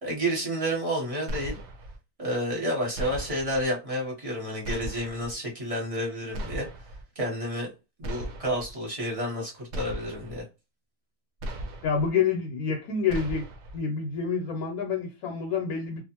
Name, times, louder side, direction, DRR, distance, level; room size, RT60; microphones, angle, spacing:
voice 1, 0.0-1.6 2.2-6.7 7.2-7.7 8.0-10.4, equal, 30° right, 0.9 m, -30 dB
sound 1, 1.3-2.0 2.9-3.6 4.6-5.3 6.3-7.0 8.0-8.7 9.7-10.4 11.4-12.1 13.1-13.8, right 1 dB, 65° right, 0.7 m, -37 dB
voice 2, 11.8-13.4 13.7-16.0, left 6 dB, 80° left, 1.1 m, -28 dB
2.5 x 2.4 x 2.9 m
omnidirectional pair, 1.5 m